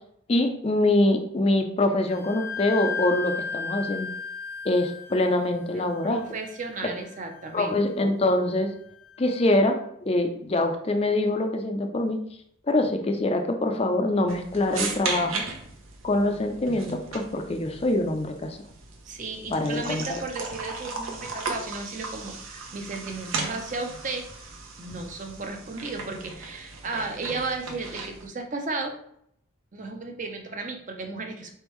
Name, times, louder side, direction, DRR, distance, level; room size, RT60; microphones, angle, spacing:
voice 1, 0.3-4.1 4.6-6.2 7.5-8.7 9.2-12.2 12.7-15.4 16.0-18.6 19.5-20.2, left 1 dB, 30° left, 5 dB, 0.4 m, -24 dB
Wind instrument woodwind instrument, 2.1-9.5, left 5 dB, 80° left, 0.6 m, -37 dB
voice 2, 5.7-7.8 19.0-24.3 24.8-28.9 29.7-31.5, right 3 dB, 35° right, 3 dB, 0.6 m, -34 dB
sound 1, 14.3-28.3, right 4 dB, 80° right, 0.8 m, -36 dB
4.3 x 3.5 x 3.1 m, 0.69 s
head